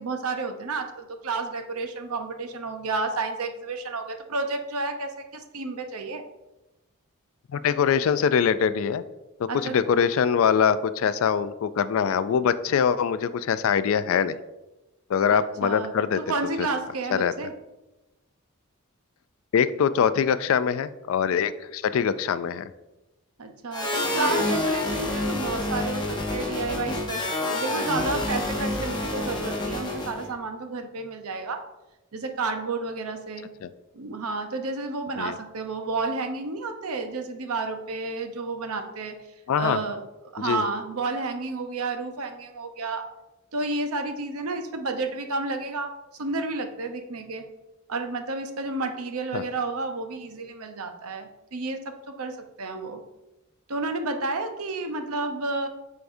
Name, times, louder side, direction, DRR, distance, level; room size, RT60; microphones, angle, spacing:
voice 1, 0.0-6.2 9.5-9.8 15.3-17.5 23.4-31.6 32.1-33.5 33.9-39.1 39.6-40.0 40.3-43.0 43.5-47.5 47.9-53.0 53.7-55.7, right 3 dB, 85° right, 6 dB, 0.8 m, -31 dB
voice 2, 7.5-9.0 9.4-14.4 15.1-16.2 16.6-16.7 17.1-17.3 19.5-22.7 33.6-33.7 35.2-35.3 39.5-39.8 40.4-40.6 49.3-49.4, left 7 dB, 65° left, 14 dB, 0.3 m, -23 dB
sound 1, 23.7-30.3, left 2 dB, 20° left, 0.8 m, -28 dB
8.2 x 4.6 x 2.6 m, 1.0 s
head